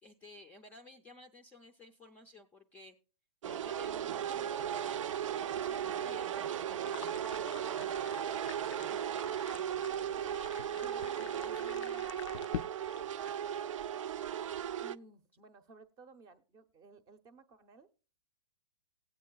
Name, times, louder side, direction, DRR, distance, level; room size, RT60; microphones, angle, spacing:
voice 1, 0.0-3.0 3.4-4.8 5.5-7.3, left 2 dB, 10° left, 5 dB, 0.5 m, -55 dB
sound 1, 3.4-15.0, right 9 dB, 65° right, 0.5 m, -36 dB
sound 2, 6.8-13.3, left 11 dB, 60° left, 0.4 m, -47 dB
voice 2, 10.7-12.1 14.8-17.9, right 4 dB, 20° right, 11 dB, 0.7 m, -56 dB
17.0 x 8.3 x 2.3 m, 0.35 s
hypercardioid pair, 145°, 18 cm